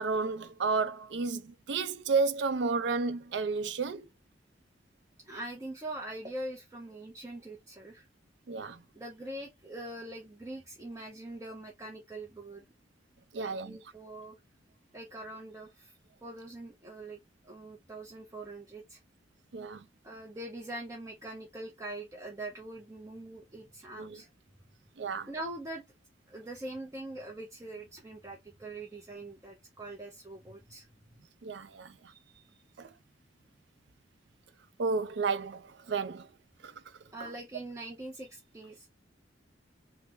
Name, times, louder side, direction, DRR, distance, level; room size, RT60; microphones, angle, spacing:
voice 1, 0.0-4.0 8.5-8.8 13.3-13.8 19.5-19.8 24.0-24.2 25.0-25.3 31.4-31.9 32.8-32.9 34.8-35.6 35.9-36.2 36.6-36.7 37.2-37.3, right 4 dB, 70° right, 0.4 m, -31 dB
voice 2, 5.2-8.1 8.9-12.6 13.4-14.4 14.9-19.0 20.0-24.3 25.3-25.8 26.3-30.9 32.1-32.6 37.1-38.9, right 1 dB, 15° right, 0.5 m, -43 dB
3.1 x 2.0 x 3.3 m
head